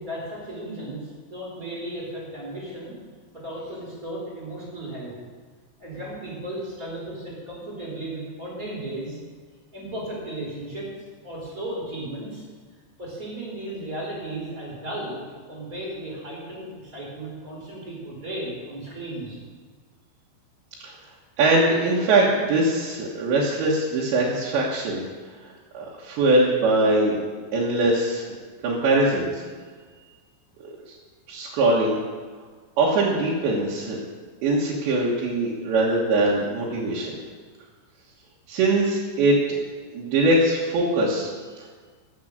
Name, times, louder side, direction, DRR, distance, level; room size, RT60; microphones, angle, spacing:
voice 1, 0.0-2.9 3.3-5.1 5.8-9.2 9.7-10.9 11.2-12.4 13.0-15.2 15.5-19.4, right 1 dB, 20° right, -5 dB, 4.4 m, -35 dB
voice 2, 21.4-25.0 25.7-27.2 27.5-28.4 28.6-29.4 30.6-31.0 31.3-32.0 32.8-34.0 34.4-37.2 38.5-39.4 39.9-41.3 41.6-41.7, right 2 dB, 70° right, -5 dB, 3.6 m, -22 dB
15.0 x 7.4 x 6.5 m, 1.5 s
omnidirectional pair, 5.5 m